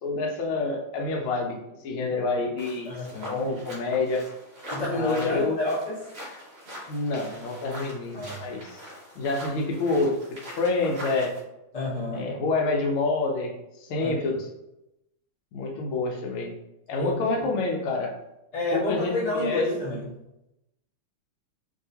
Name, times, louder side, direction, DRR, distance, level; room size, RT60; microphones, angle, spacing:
voice 1, 0.0-2.9 3.2-4.3 4.9-5.6 6.9-8.8 9.2-11.4 12.1-14.5 15.5-16.6 16.9-18.1 18.7-19.6, left 3 dB, 80° left, 1 dB, 1.5 m, -28 dB
sound 1, 2.6-11.4, equal, 60° right, 0.6 m, -42 dB
voice 2, 2.8-3.5 4.7-6.0 8.1-8.6 11.7-12.3 14.0-14.2 16.9-17.5 18.5-20.1, left 2 dB, 40° left, -7 dB, 0.5 m, -29 dB
3.2 x 2.7 x 2.7 m, 0.90 s
omnidirectional pair, 2.3 m